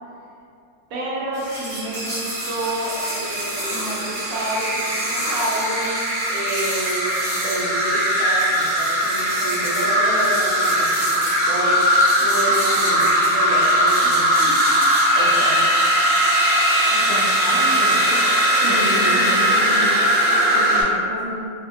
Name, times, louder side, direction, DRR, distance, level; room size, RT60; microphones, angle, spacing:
voice 1, 0.9-14.6 15.1-15.7 18.7-19.2, right 1 dB, 85° right, -5 dB, 1.1 m, -29 dB
sound 1, 1.3-20.8, equal, 45° right, 0.8 m, -20 dB
Wind instrument woodwind instrument, 15.0-19.6, right 1 dB, 60° left, 0.7 m, -24 dB
voice 2, 16.9-18.3 18.5-20.0 20.5-21.5, equal, 30° right, -9 dB, 0.3 m, -30 dB
2.8 x 2.5 x 2.5 m, 2.4 s
omnidirectional pair, 1.5 m